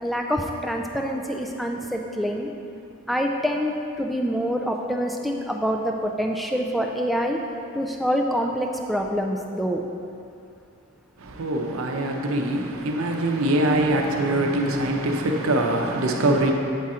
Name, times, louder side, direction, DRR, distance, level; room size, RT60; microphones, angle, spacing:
voice 1, 0.0-2.5 3.1-7.4 7.7-9.8, equal, ahead, 1 dB, 0.3 m, -26 dB
voice 2, 11.2-16.5, right 1 dB, 80° right, 2 dB, 0.7 m, -23 dB
8.4 x 3.7 x 4.2 m, 2.6 s
head